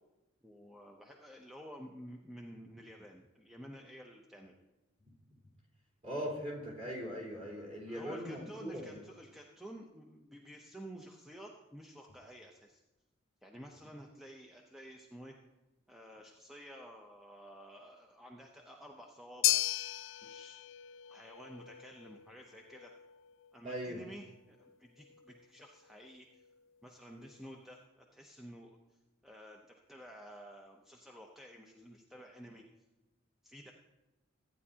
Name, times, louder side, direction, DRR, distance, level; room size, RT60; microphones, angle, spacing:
voice 1, 0.4-4.5 7.8-12.8 13.4-15.4 15.9-19.6 20.2-20.6 21.1-22.9 23.5-26.4 26.8-28.8 29.2-32.6 33.4-33.7, equal, ahead, 0 dB, 0.6 m, -51 dB
voice 2, 6.0-9.0 23.6-24.0, equal, 35° right, -6 dB, 3.5 m, -40 dB
sound 1, 19.4-27.8, left 15 dB, 65° left, 0.3 m, -38 dB
14.5 x 9.6 x 2.8 m, 1.0 s
head